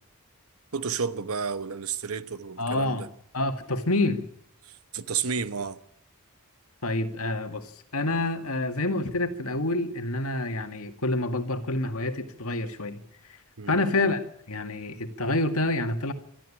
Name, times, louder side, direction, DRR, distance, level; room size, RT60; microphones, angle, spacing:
voice 1, 0.7-3.1 4.6-5.8 13.6-13.8, right 6 dB, 70° right, 1.1 m, -31 dB
voice 2, 2.6-3.1 3.3-4.2 6.8-13.0 13.3-13.4 13.7-16.1, left 2 dB, 70° left, 2.1 m, -28 dB
22.5 x 13.5 x 8.6 m
head